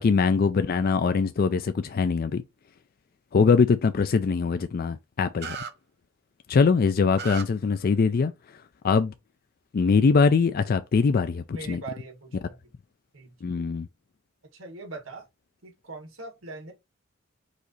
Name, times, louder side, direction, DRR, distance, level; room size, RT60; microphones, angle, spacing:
voice 1, 0.0-2.4 3.3-5.6 6.5-8.3 8.8-9.1 9.7-11.8 13.4-13.9, left 5 dB, 45° left, 0.4 m, -22 dB
sound 1, 5.4-5.7 7.1-7.4, right 6 dB, 50° right, 0.7 m, -34 dB
voice 2, 11.5-12.6 13.1-13.3 14.5-15.3 15.6-16.7, right 3 dB, 70° right, 1.9 m, -41 dB
4.9 x 2.7 x 3.9 m
head